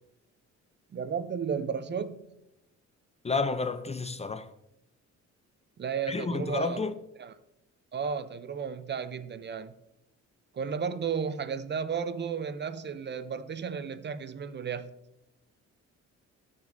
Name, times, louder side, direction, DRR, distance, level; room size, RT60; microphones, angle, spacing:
voice 1, 0.9-2.2 5.8-6.8 7.2-7.3 7.9-9.7 10.5-14.9, right 6 dB, 35° right, 0.5 m, -33 dB
voice 2, 3.2-4.5 6.1-6.9, left 4 dB, 20° left, 0.5 m, -30 dB
14.0 x 6.2 x 2.6 m
cardioid pair, 90°, 30 cm